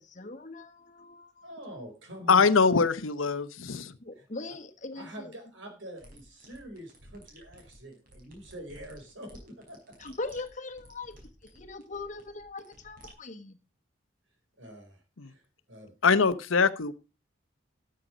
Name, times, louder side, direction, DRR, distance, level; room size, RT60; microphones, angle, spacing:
voice 1, 0.0-1.6 4.0-5.3 10.0-11.1 11.4-13.6, left 3 dB, 40° left, 6 dB, 1.3 m, -41 dB
voice 2, 1.4-2.5 4.2-4.3 4.9-9.9 14.6-15.0 15.2-15.4 15.7-15.9, equal, 75° right, 4 dB, 4.6 m, -45 dB
voice 3, 2.3-3.9 15.2-15.3 16.0-16.9, left 5 dB, 90° left, 14 dB, 0.9 m, -23 dB
sound 1, 6.0-13.1, right 1 dB, 45° right, 4.9 m, -54 dB
13.0 x 7.6 x 5.0 m, 0.32 s
head